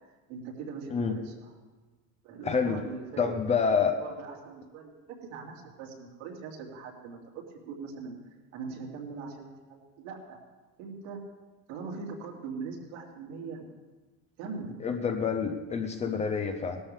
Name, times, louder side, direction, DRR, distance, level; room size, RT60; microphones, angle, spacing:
voice 1, 0.3-1.5 2.2-3.3 4.0-8.2 8.5-10.4 10.8-11.2 11.7-13.7 14.4-14.8, right 5 dB, 80° right, -2 dB, 3.2 m, -41 dB
voice 2, 2.4-2.8 3.2-4.0 14.8-16.8, left 6 dB, 20° left, 6 dB, 0.6 m, -27 dB
18.0 x 13.0 x 3.6 m, 1.2 s
cardioid pair, 165°, 38 cm